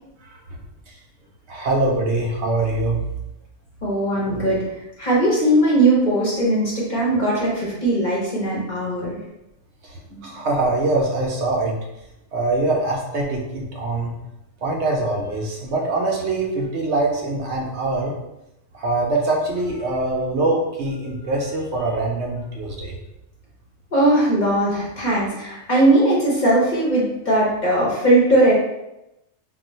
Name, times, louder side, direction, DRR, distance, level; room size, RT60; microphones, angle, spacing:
voice 1, 1.5-3.0 9.8-11.8 12.3-14.2 14.6-18.1 18.7-23.0, right 2 dB, 70° right, 0 dB, 0.8 m, -23 dB
voice 2, 3.8-4.6 5.0-9.2 10.1-10.3 23.9-28.5, right 1 dB, 45° left, -5 dB, 0.8 m, -19 dB
2.4 x 2.2 x 3.9 m, 0.91 s
omnidirectional pair, 1.3 m